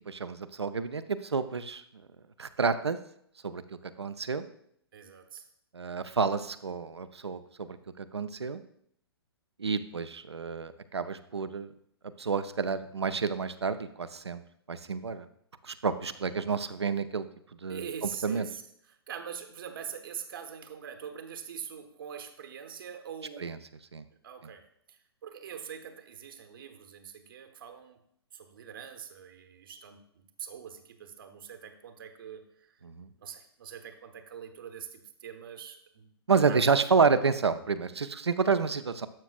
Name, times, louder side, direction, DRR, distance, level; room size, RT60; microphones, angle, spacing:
voice 1, 0.1-1.8 2.4-3.0 3.4-3.6 4.0-4.4 5.7-7.7 8.0-8.6 9.6-11.7 12.2-14.4 14.7-15.3 15.6-17.2 17.6-17.9 18.2-18.5 23.4-23.6 23.9-24.0 32.8-33.1 36.3-39.1, right 5 dB, 80° right, 11 dB, 0.5 m, -29 dB
voice 2, 4.9-5.4 17.7-18.6 19.1-23.6 24.2-24.6 24.9-28.0 28.3-30.0 30.4-32.7 33.2-36.1 36.5-36.6, right 8 dB, 55° right, 6 dB, 0.9 m, -43 dB
12.0 x 5.9 x 2.4 m, 0.70 s
figure-of-eight pair, 120°, 14 cm